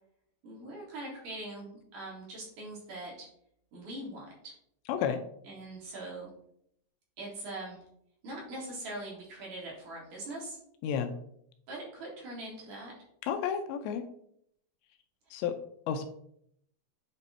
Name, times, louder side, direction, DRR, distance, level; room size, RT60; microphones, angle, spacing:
voice 1, 0.4-3.3 3.7-4.5 5.4-6.3 7.2-7.8 8.2-10.6 11.7-12.9, right 1 dB, 50° right, -4 dB, 2.5 m, -42 dB
voice 2, 4.9-5.2 10.8-11.1 13.2-14.0 15.3-15.5 15.9-16.1, left 8 dB, 85° left, 7 dB, 2.5 m, -31 dB
8.5 x 3.4 x 4.2 m, 0.70 s
omnidirectional pair, 5.5 m